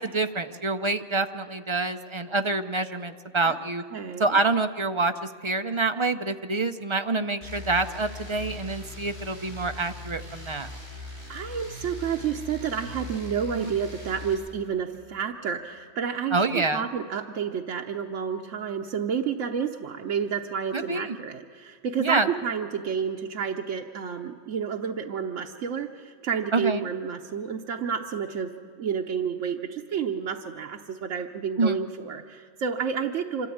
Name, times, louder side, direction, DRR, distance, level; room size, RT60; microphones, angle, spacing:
voice 1, 0.0-3.8 4.2-10.7 13.5-13.7 16.3-16.8 20.7-21.2 22.0-22.3 26.5-26.8 31.6-31.8, right 3 dB, 35° right, 8 dB, 0.5 m, -27 dB
voice 2, 3.9-4.4 11.3-33.5, right 7 dB, 85° right, 2 dB, 1.1 m, -30 dB
sound 1, 7.4-14.3, left 2 dB, 65° right, 6.0 m, -40 dB
25.5 x 13.5 x 8.6 m, 2.1 s
omnidirectional pair, 1.2 m